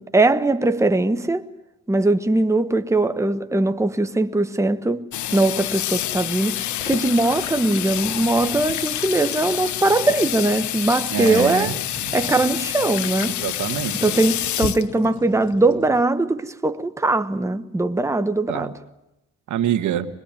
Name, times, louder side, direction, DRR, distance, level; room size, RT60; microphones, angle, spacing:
voice 1, 0.0-1.4 1.9-11.7 12.1-13.4 14.0-18.7, right 2 dB, 10° right, 1.2 m, -21 dB
Water tap faucet / Sink (filling or washing), 5.1-16.0, left 13 dB, 70° left, 0.8 m, -28 dB
voice 2, 11.1-11.7 13.4-14.2 18.5-18.7 19.5-20.1, right 10 dB, 75° right, 1.9 m, -25 dB
24.0 x 21.0 x 9.0 m
cardioid pair, 90°, 30 cm